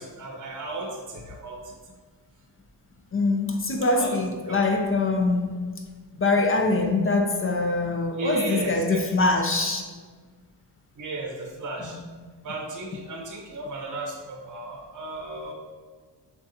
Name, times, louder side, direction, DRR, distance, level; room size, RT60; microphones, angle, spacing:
voice 1, 0.0-1.6 3.9-4.1 4.5-4.7 8.2-9.3 11.0-12.0 12.4-15.5, right 2 dB, 45° right, 0 dB, 0.9 m, -35 dB
voice 2, 3.1-5.7 6.1-9.9 11.8-12.1, left 3 dB, 30° left, 3 dB, 0.6 m, -24 dB
6.8 x 2.4 x 2.7 m, 1.5 s
cardioid pair, 60°, 45 cm